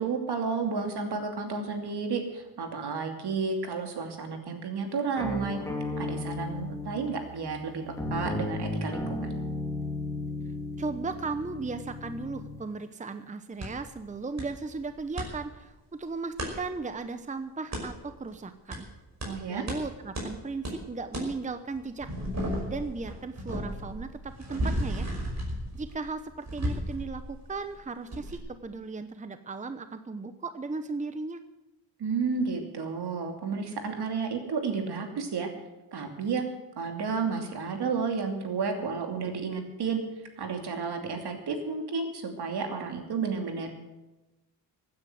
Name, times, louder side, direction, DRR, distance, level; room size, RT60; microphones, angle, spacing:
voice 1, 0.0-5.6 6.0-9.3 19.2-19.6 32.0-35.5 35.9-36.4 36.8-40.0 40.4-43.7, right 5 dB, 65° right, 4 dB, 2.8 m, -32 dB
sound 1, 5.2-12.6, left 2 dB, 5° left, 2.9 m, -35 dB
voice 2, 10.8-18.9 19.5-22.1 22.7-25.1 25.7-31.4, right 4 dB, 20° right, 10 dB, 0.8 m, -36 dB
sound 2, 13.6-13.7 14.4-14.5 14.8-15.3 16.4-16.5 17.7-17.8 18.7-18.8 19.2-19.3 19.7-19.8 20.1-20.3 20.6-20.8 21.1-21.3 21.7-27.7 28.1-28.4, equal, 40° right, 5.6 m, -34 dB
15.5 x 9.6 x 7.9 m, 1.0 s
cardioid pair, 100°, 42 cm